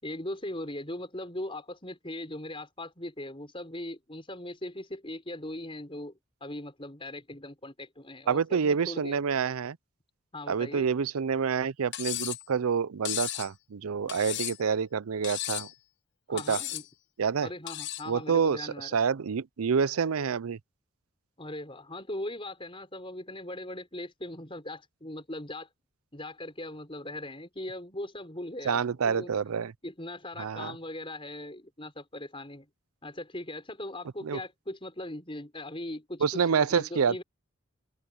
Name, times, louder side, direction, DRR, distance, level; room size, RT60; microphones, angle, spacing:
voice 1, 0.0-6.1 6.4-9.2 10.3-10.9 16.3-16.8 17.4-18.9 21.4-25.7 26.1-29.3 29.8-32.7 33.0-36.2 36.5-37.2, left 1 dB, 25° left, 6.0 m, -39 dB
voice 2, 8.3-9.8 10.5-15.7 16.3-16.6 17.2-17.5 18.1-20.6 28.6-29.7 30.4-30.7 34.2-34.4 36.2-37.2, right 6 dB, 80° right, 0.5 m, -28 dB
Cutlery silverware, 11.9-12.5 13.1-13.5 14.1-14.7 15.2-15.7 16.4-16.9 17.7-18.1, left 13 dB, 55° left, 1.0 m, -35 dB
open air
head